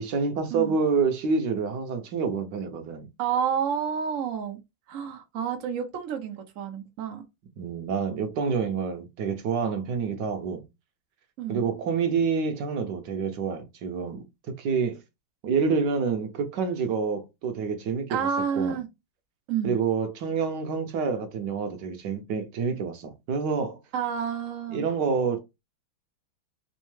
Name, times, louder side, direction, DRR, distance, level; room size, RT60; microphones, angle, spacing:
voice 1, 0.0-3.1 7.6-10.6 11.5-15.0 15.4-18.3 18.5-18.8 19.6-23.8 24.7-25.4, right 5 dB, 65° right, 1.2 m, -27 dB
voice 2, 3.2-4.6 4.9-7.2 11.4-11.6 18.1-18.9 19.5-19.8 23.9-24.9, right 7 dB, 80° right, 0.7 m, -29 dB
3.5 x 3.2 x 3.1 m
omnidirectional pair, 2.4 m